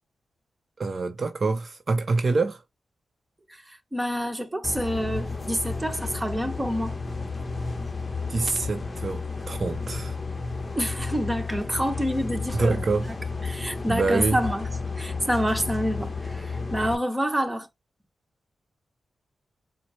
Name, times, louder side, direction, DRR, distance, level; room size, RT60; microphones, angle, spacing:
voice 1, 0.8-2.6 8.3-10.2 12.5-13.1 13.9-14.4, right 3 dB, 50° right, 0.5 m, -26 dB
voice 2, 3.9-7.0 10.8-12.7 13.5-14.7 15.0-17.7, equal, 15° right, 1.0 m, -27 dB
sound 1, 4.6-16.9, left 4 dB, 30° left, 0.9 m, -32 dB
4.4 x 2.0 x 4.0 m
cardioid pair, 55°, 0 cm